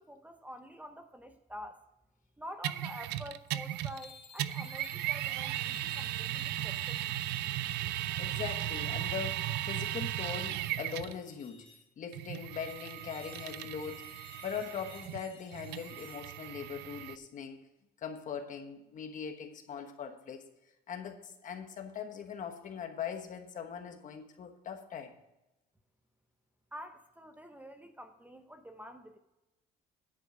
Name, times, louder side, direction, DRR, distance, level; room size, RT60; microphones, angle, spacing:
voice 1, 0.0-1.8 2.4-7.2 26.7-29.2, equal, 10° right, 7 dB, 0.6 m, -48 dB
sound 1, 2.6-4.1 4.4-11.2 12.1-17.2, right 13 dB, 85° right, 0.4 m, -36 dB
sound 2, 3.7-7.4 7.8-11.9 12.5-16.5, left 4 dB, 30° left, 1.9 m, -56 dB
voice 2, 8.2-11.7 12.0-14.1 14.4-17.6 18.0-20.4 20.9-25.2, left 7 dB, 50° left, 5 dB, 1.2 m, -41 dB
10.0 x 4.5 x 7.1 m, 0.97 s
cardioid pair, 110°, 17 cm